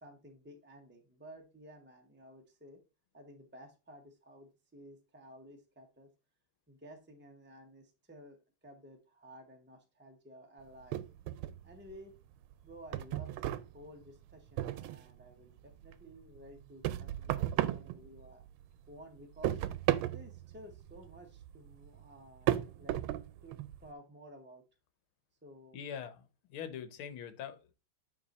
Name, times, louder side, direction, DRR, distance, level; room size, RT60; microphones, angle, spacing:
voice 1, 0.0-2.8 3.1-6.1 6.7-11.0 11.6-12.1 12.6-18.4 18.9-19.6 20.1-23.0 23.4-24.6 25.4-25.8, equal, 15° right, 2 dB, 0.4 m, -54 dB
sound 1, 10.9-12.0 12.3-15.2 15.6-18.6 18.9-23.8, right 13 dB, 85° right, 1.4 m, -35 dB
voice 2, 25.7-27.7, left 8 dB, 80° left, 11 dB, 1.7 m, -43 dB
9.2 x 3.7 x 4.1 m, 0.30 s
omnidirectional pair, 2.3 m